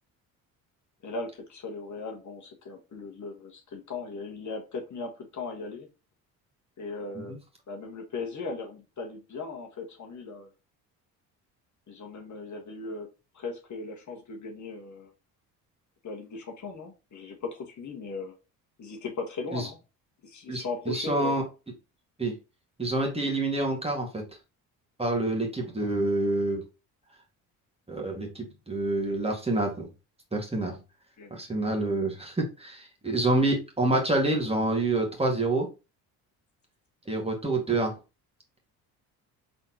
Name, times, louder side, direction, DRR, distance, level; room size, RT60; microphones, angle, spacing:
voice 1, 1.0-5.9 6.8-7.4 7.7-10.5 11.9-13.1 13.3-15.1 16.0-18.3 18.8-19.8 20.2-21.4 31.2-31.3, left 3 dB, 45° left, 1 dB, 1.5 m, -38 dB
voice 2, 20.5-21.4 22.2-22.3 22.8-24.2 25.0-26.7 27.9-29.9 30.3-30.8 31.3-35.7 37.1-38.0, right 2 dB, 15° right, 0 dB, 1.8 m, -27 dB
4.2 x 3.9 x 2.9 m, 0.28 s
hypercardioid pair, 60°, 42 cm